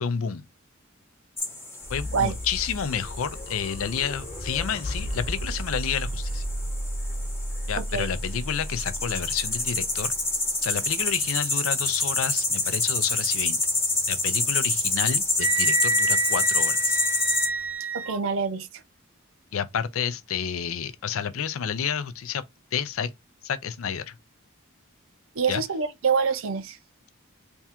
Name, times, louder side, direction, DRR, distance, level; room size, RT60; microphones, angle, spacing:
voice 1, 0.0-0.4 1.9-6.4 7.7-10.1 10.6-13.6 14.1-17.0 19.5-22.4 22.7-23.1 23.4-24.2 25.5-25.6, left 7 dB, 75° left, 0.5 m, -30 dB
sound 1, 1.4-17.5, left 2 dB, 15° left, 0.9 m, -28 dB
sound 2, 1.8-17.7, equal, 30° left, 1.1 m, -36 dB
voice 2, 7.8-8.1 17.9-18.8 25.4-26.8, right 5 dB, 70° right, 0.5 m, -26 dB
Wind instrument woodwind instrument, 15.4-18.2, right 2 dB, 10° right, 0.6 m, -27 dB
3.5 x 2.3 x 4.2 m
head